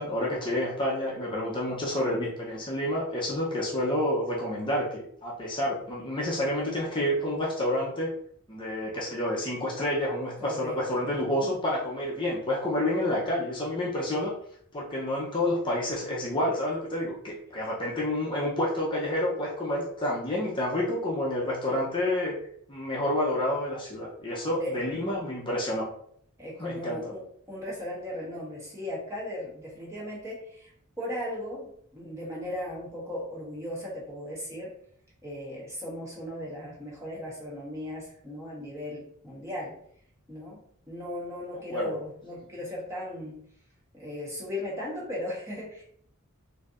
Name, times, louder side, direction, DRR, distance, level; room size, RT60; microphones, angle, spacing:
voice 1, 0.0-8.1 8.5-14.3 14.7-22.3 22.7-25.9 26.6-27.0 41.7-41.9, left 1 dB, 20° left, -5 dB, 0.7 m, -29 dB
voice 2, 10.4-11.5 24.5-24.8 26.4-30.7 31.0-34.7 35.2-39.8 40.3-43.4 43.9-45.8, left 1 dB, 15° right, -5 dB, 1.0 m, -37 dB
4.3 x 2.7 x 2.5 m, 0.66 s
head